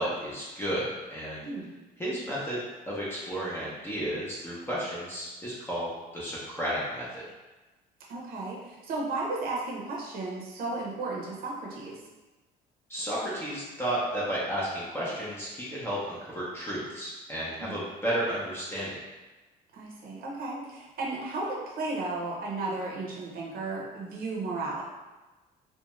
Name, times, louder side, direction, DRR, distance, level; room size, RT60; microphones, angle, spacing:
voice 1, 0.0-1.4 2.0-7.2 12.9-19.0, equal, 15° left, -8 dB, 0.6 m, -33 dB
voice 2, 8.1-12.0 17.6-17.8 19.7-24.8, right 3 dB, 60° right, -3 dB, 0.7 m, -34 dB
2.5 x 2.2 x 3.0 m, 1.2 s
cardioid pair, 110°, 17 cm